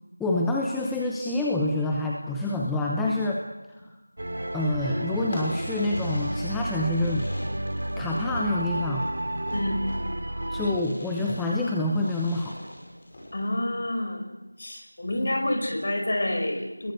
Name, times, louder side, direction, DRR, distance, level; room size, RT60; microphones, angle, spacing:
voice 1, 0.2-3.4 4.5-7.3 8.0-9.0 10.5-12.6, left 2 dB, 5° left, -2 dB, 0.9 m, -27 dB
sound 1, 4.2-10.8, right 1 dB, 55° right, 2.8 m, -31 dB
Fireworks, 5.2-13.6, left 1 dB, 20° left, 6.5 m, -43 dB
voice 2, 9.5-9.9 13.3-14.2 14.6-16.9, left 1 dB, 40° left, 4 dB, 5.2 m, -28 dB
29.0 x 21.5 x 6.7 m, 1.1 s
figure-of-eight pair, 170°, 0 cm